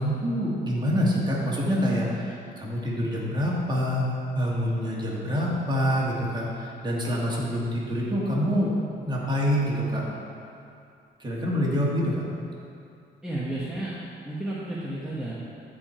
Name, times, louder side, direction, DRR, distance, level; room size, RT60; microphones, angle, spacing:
voice 1, 0.0-4.1 4.3-8.7 9.0-10.0 11.2-12.3, equal, 20° right, -5 dB, 2.4 m, -26 dB
voice 2, 13.2-14.0 14.2-15.3, right 1 dB, 5° right, -9 dB, 1.5 m, -32 dB
14.0 x 5.0 x 4.5 m, 2.6 s
cardioid pair, 90°, 20 cm